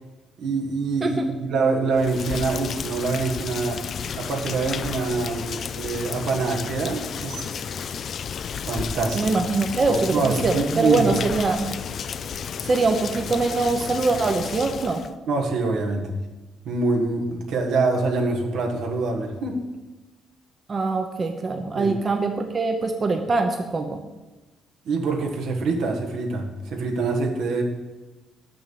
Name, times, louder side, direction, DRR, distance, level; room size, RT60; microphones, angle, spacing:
voice 1, 0.4-3.8 4.1-7.5 8.6-9.3 9.9-11.1 15.3-16.2 16.6-19.6 21.7-21.9 24.8-27.6, right 3 dB, 80° right, 1 dB, 1.4 m, -25 dB
Rain, 1.9-15.1, left 7 dB, 60° left, 0.4 m, -32 dB
voice 2, 9.1-11.7 12.6-15.0 20.7-24.0, right 3 dB, 35° right, 4 dB, 0.8 m, -23 dB
6.2 x 6.1 x 6.9 m, 1.1 s
cardioid pair, 90°, 0 cm